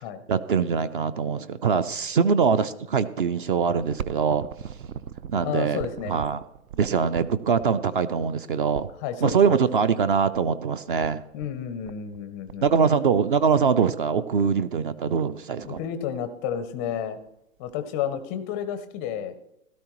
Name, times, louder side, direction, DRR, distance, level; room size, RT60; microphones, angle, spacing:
voice 1, 0.3-4.4 5.3-5.8 6.1-6.4 6.8-8.9 9.2-11.2 12.6-15.8, right 6 dB, 40° right, 14 dB, 0.5 m, -23 dB
sound 1, 3.7-9.4 10.3-10.4 10.7-10.8 11.0-11.5 11.8-12.2 12.5-13.4 13.9-14.0 14.4-14.7 15.1-15.2 15.4-16.0 16.5-17.3 17.7-17.8 18.6-18.7, right 8 dB, 70° right, 0.8 m, -39 dB
voice 2, 5.4-6.1 9.0-9.6 11.3-12.9 15.6-17.2 17.6-19.4, left 9 dB, 15° left, 10 dB, 0.5 m, -31 dB
16.5 x 13.0 x 3.0 m, 0.84 s
hypercardioid pair, 135°, 43 cm